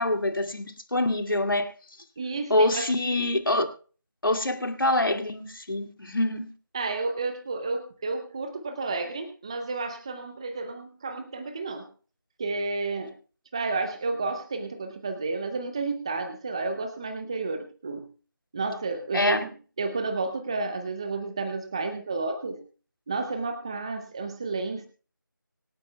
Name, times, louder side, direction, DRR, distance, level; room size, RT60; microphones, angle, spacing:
voice 1, 0.0-1.7 2.5-3.7 4.2-6.5 19.1-19.4, left 1 dB, 75° left, 2.3 m, -25 dB
voice 2, 2.2-2.9 6.7-11.9 12.4-13.1 13.5-18.1 18.5-22.6 23.1-24.9, right 3 dB, 15° right, 0.6 m, -31 dB
25.0 x 9.3 x 2.3 m
figure-of-eight pair, 165°, 11 cm